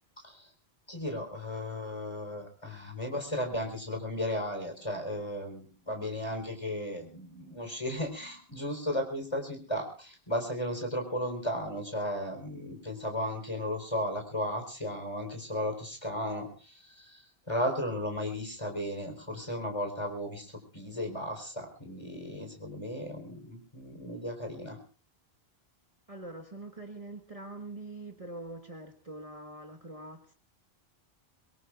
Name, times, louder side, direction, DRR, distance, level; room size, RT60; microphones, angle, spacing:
voice 1, 0.9-24.8, equal, 30° left, 4.2 m, -35 dB
voice 2, 26.1-30.3, right 2 dB, 35° right, 1.6 m, -44 dB
24.0 x 22.5 x 2.5 m
omnidirectional pair, 1.1 m